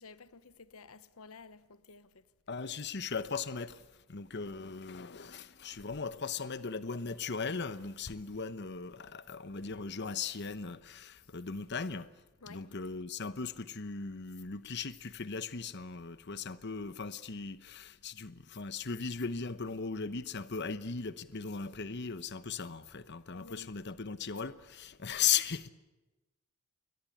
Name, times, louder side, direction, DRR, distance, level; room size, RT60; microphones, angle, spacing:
voice 1, 0.0-2.2 12.4-12.6 23.3-23.7, left 4 dB, 75° left, 1.0 m, -53 dB
voice 2, 2.5-12.1 12.5-25.7, left 6 dB, 50° left, 1.0 m, -37 dB
30.0 x 23.0 x 8.7 m
head